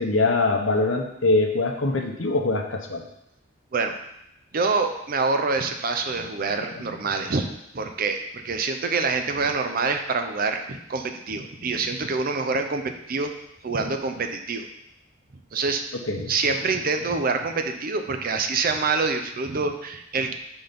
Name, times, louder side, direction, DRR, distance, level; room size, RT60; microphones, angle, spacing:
voice 1, 0.0-3.0 16.1-16.3, left 2 dB, 75° left, 3 dB, 0.9 m, -23 dB
voice 2, 4.5-7.5 7.7-13.3 13.6-14.7 15.5-15.9 16.3-20.3, right 4 dB, 45° right, 6 dB, 0.6 m, -26 dB
5.9 x 4.0 x 5.1 m, 0.79 s
head